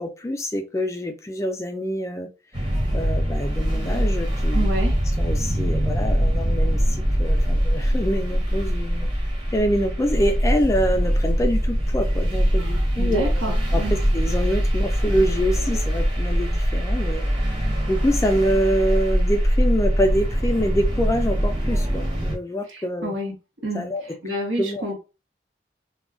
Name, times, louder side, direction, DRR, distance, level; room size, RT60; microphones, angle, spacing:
voice 1, 0.0-2.3 2.9-4.7 5.2-9.1 9.5-17.2 17.9-23.1 23.7-24.0 24.6-24.8, equal, 15° left, 0.3 m, -25 dB
sound 1, 2.5-22.4, equal, 25° right, 0.8 m, -22 dB
voice 2, 4.5-5.0 13.0-13.9 22.7-23.3 23.6-23.9 24.2-25.0, equal, 90° right, 1.1 m, -29 dB
2.3 x 2.1 x 3.6 m
head